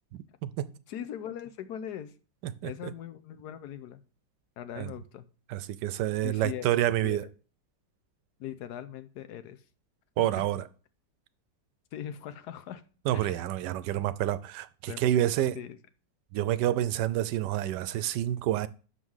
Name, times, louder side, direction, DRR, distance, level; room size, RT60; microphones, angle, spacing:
voice 1, 0.1-0.7 2.4-2.7 4.8-4.9 5.5-7.2 10.2-10.6 13.1-15.6 16.3-18.7, right 12 dB, 80° right, 1.2 m, -28 dB
voice 2, 0.9-2.1 2.6-4.0 4.6-5.2 6.2-7.2 8.4-9.6 10.2-10.4 11.9-12.8 13.1-13.4 14.9-15.0 15.5-15.8, left 10 dB, 70° left, 1.2 m, -40 dB
6.3 x 5.5 x 6.3 m
omnidirectional pair, 1.9 m